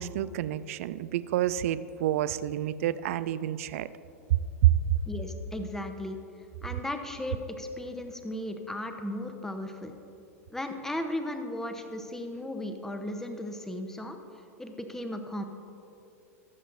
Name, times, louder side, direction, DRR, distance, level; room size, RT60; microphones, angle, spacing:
voice 1, 0.0-3.9 4.3-5.0, right 12 dB, 60° right, 15 dB, 0.4 m, -27 dB
voice 2, 5.1-6.2 6.6-10.0 10.5-14.2 14.6-15.4, left 1 dB, 5° left, 6 dB, 0.8 m, -36 dB
20.5 x 7.6 x 2.6 m, 2.7 s
figure-of-eight pair, 95°, 9 cm